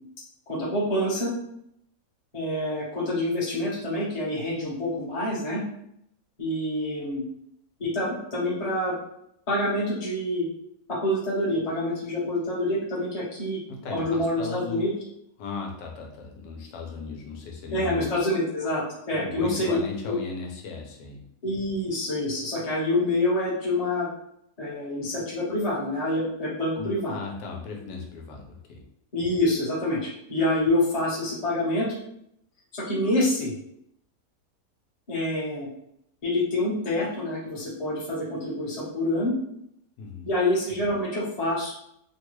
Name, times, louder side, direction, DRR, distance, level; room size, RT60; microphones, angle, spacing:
voice 1, 0.5-1.3 2.3-5.6 6.4-7.2 7.8-9.0 9.5-10.5 10.9-13.6 13.9-14.9 17.7-19.7 20.1-20.2 21.4-24.1 24.6-27.2 29.1-31.9 32.7-33.5 35.1-35.7 36.2-39.3 40.3-41.7, left 1 dB, 25° left, -7 dB, 0.9 m, -27 dB
voice 2, 13.7-14.8 15.4-18.2 19.1-21.3 26.8-28.8 40.0-40.3, left 4 dB, 85° left, 0 dB, 1.3 m, -36 dB
3.3 x 2.2 x 3.1 m, 0.75 s
omnidirectional pair, 1.8 m